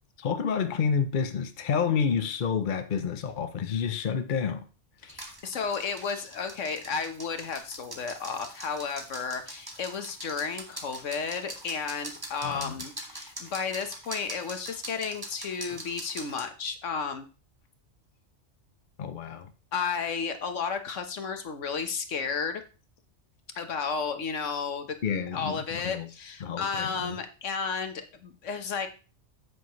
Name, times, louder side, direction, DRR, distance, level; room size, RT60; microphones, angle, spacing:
voice 1, 0.2-4.7 12.4-12.8 19.0-19.5 25.0-26.1 26.4-27.2, left 6 dB, 50° left, 0.7 m, -29 dB
voice 2, 5.0-17.3 19.7-22.6 23.5-24.9 25.3-28.9, left 5 dB, 85° left, 1.5 m, -33 dB
sound 1, 5.1-16.5, right 1 dB, 20° right, 1.8 m, -43 dB
9.4 x 8.2 x 3.1 m
omnidirectional pair, 1.2 m